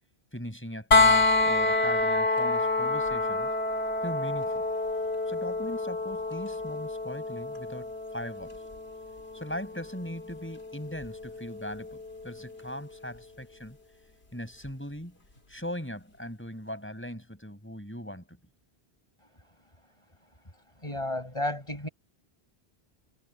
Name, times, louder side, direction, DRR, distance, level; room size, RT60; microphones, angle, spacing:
voice 1, 0.3-3.5 4.0-4.6 5.3-8.6 9.3-13.8 14.3-15.2 15.5-18.4, equal, 10° left, 5.8 m, -39 dB
sound 1, 0.9-12.7 14.6-14.7, left 3 dB, 70° left, 3.1 m, -28 dB
voice 2, 20.8-21.9, left 1 dB, 30° left, 6.1 m, -32 dB
omnidirectional pair, 1.1 m